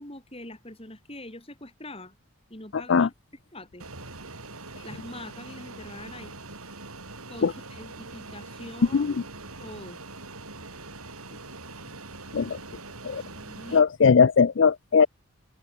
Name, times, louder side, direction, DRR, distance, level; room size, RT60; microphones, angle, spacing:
voice 1, 0.0-2.1 2.5-3.1 3.5-3.8 4.8-6.3 7.3-9.0 9.6-10.0 13.4-13.8, left 1 dB, 25° left, 4.6 m, -43 dB
Fixed-wing aircraft airplane, 3.8-13.8, right 3 dB, 90° right, 6.7 m, -43 dB
voice 2, 13.7-15.1, left 5 dB, 60° left, 0.4 m, -19 dB
open air
head